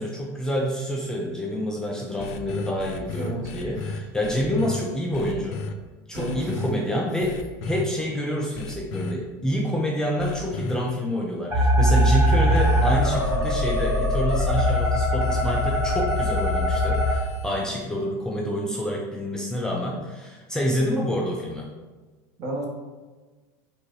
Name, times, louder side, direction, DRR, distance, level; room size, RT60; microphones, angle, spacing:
voice 1, 0.0-5.6 6.1-21.7, equal, 5° left, -2 dB, 0.4 m, -27 dB
sound 1, 2.2-4.8 5.1-5.7 6.1-6.7 7.2-7.8 8.5-9.1 10.2-10.7 11.9-17.7, left 5 dB, 60° left, 0.4 m, -35 dB
voice 2, 3.2-3.5 6.1-7.0 22.4-22.6, right 1 dB, 40° right, -2 dB, 1.2 m, -32 dB
sound 2, 11.5-17.1, equal, 20° right, 1.3 m, -21 dB
4.3 x 2.6 x 4.7 m, 1.3 s
supercardioid pair, 145°, 9 cm